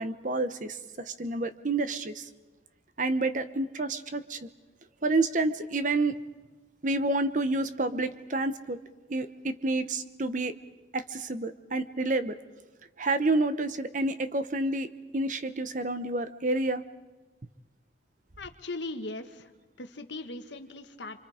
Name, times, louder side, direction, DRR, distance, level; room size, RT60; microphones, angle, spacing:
voice 1, 0.0-2.3 3.0-4.5 5.0-6.2 6.8-8.8 9.1-10.5 10.9-12.4 13.0-14.9 15.1-16.8, right 2 dB, 45° right, 11 dB, 0.9 m, -29 dB
voice 2, 18.4-19.5 19.8-21.2, left 2 dB, 75° left, 7 dB, 1.6 m, -39 dB
29.5 x 25.0 x 5.0 m, 1.2 s
head